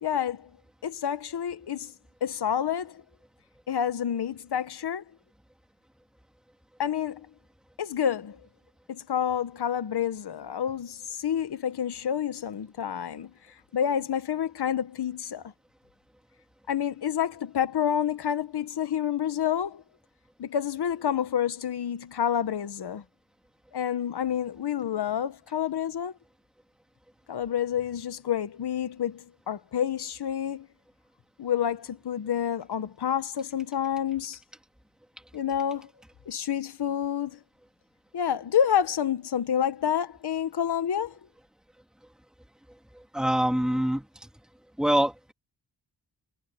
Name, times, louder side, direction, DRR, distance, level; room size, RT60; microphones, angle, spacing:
voice 1, 0.0-0.5 0.8-1.9 2.2-3.0 3.7-5.0 6.8-7.3 7.8-8.4 8.9-13.3 13.7-15.5 16.7-19.8 20.4-23.0 23.7-26.1 27.3-30.7 31.4-34.4 35.3-35.9 36.3-37.4 38.1-41.2, left 9 dB, 70° left, 1.4 m, -28 dB
voice 2, 43.1-44.1 44.8-45.3, right 1 dB, ahead, 2.4 m, -24 dB
wide cardioid pair, 105°, 41 cm